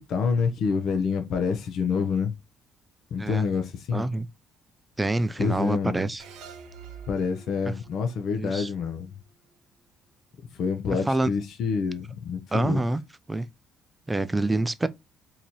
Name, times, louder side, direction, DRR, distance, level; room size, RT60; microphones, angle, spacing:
voice 1, 0.1-2.3 3.1-4.1 5.4-6.0 7.1-9.2 10.5-12.8, left 5 dB, 60° left, 0.7 m, -27 dB
voice 2, 3.9-4.3 5.0-6.2 7.7-7.8 8.4-8.7 11.1-11.3 12.5-13.0 13.3-13.5 14.1-14.9, right 2 dB, 10° right, 0.3 m, -26 dB
sound 1, 6.2-9.5, right 6 dB, 85° right, 0.9 m, -47 dB
3.9 x 2.8 x 2.9 m
cardioid pair, 120°, 0 cm